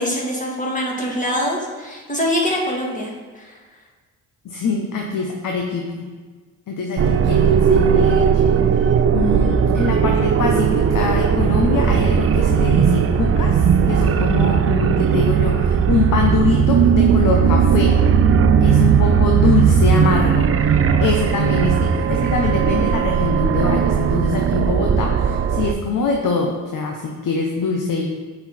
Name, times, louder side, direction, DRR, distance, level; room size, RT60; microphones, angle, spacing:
voice 1, 0.0-3.6, equal, 20° left, -2 dB, 2.3 m, -24 dB
voice 2, 4.4-6.1 6.7-8.7 9.1-18.0 18.6-20.5 21.0-28.1, left 4 dB, 55° left, 1 dB, 1.1 m, -23 dB
sound 1, 7.0-25.7, right 7 dB, 35° right, 0.6 m, -17 dB
7.7 x 4.5 x 4.4 m, 1.4 s
supercardioid pair, 60°, 39 cm